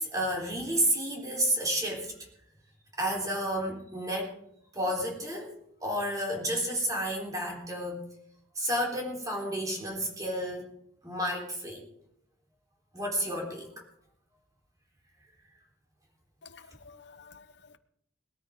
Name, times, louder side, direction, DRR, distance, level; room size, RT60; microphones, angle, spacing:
voice 1, 0.0-2.1 2.9-4.3 4.7-5.5 5.8-8.0 8.6-10.7 11.0-11.8 12.9-13.7, equal, 20° right, 3.8 m, -31 dB
voice 2, 16.4-17.8, left 5 dB, 60° left, 0.8 m, -52 dB
21.0 x 13.5 x 3.7 m
head